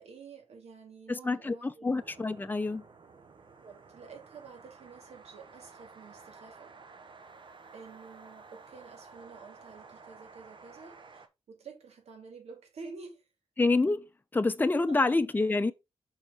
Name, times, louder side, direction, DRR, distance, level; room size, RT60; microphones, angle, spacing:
voice 1, 0.0-2.0 3.6-6.7 7.7-13.3 14.7-15.0, right 4 dB, 80° right, 2.3 m, -50 dB
voice 2, 1.1-2.8 13.6-14.0 14.3-15.7, left 3 dB, 15° left, 0.6 m, -27 dB
sound 1, 1.9-11.3, right 4 dB, 50° right, 1.0 m, -53 dB
5.7 x 4.2 x 4.9 m
cardioid pair, 100°, 11 cm